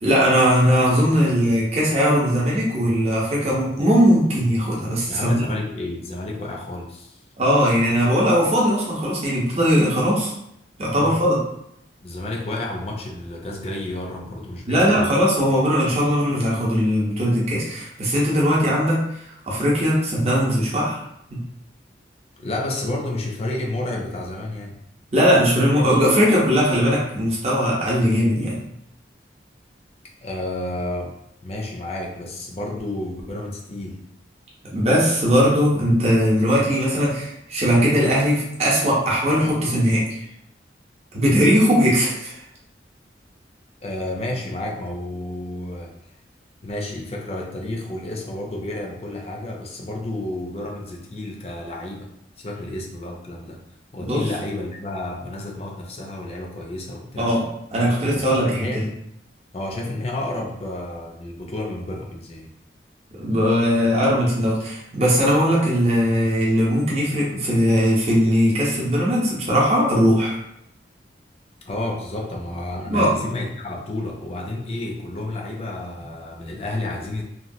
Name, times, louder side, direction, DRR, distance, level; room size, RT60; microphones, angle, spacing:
voice 1, 0.0-5.4 7.4-10.3 10.8-11.4 14.7-21.0 21.3-21.4 25.1-28.6 34.7-40.2 41.1-42.4 54.0-54.3 57.2-57.4 57.7-58.9 63.2-70.4 72.9-73.1, equal, 35° right, -5 dB, 0.7 m, -19 dB
voice 2, 5.1-7.2 10.9-11.2 12.0-15.1 22.4-24.8 30.2-31.1 31.4-34.0 43.8-45.9 46.6-52.1 52.4-53.6 53.9-57.3 57.8-58.8 59.5-62.5 71.7-77.2, left 1 dB, 35° left, -1 dB, 0.5 m, -31 dB
3.0 x 2.3 x 2.6 m, 0.78 s
head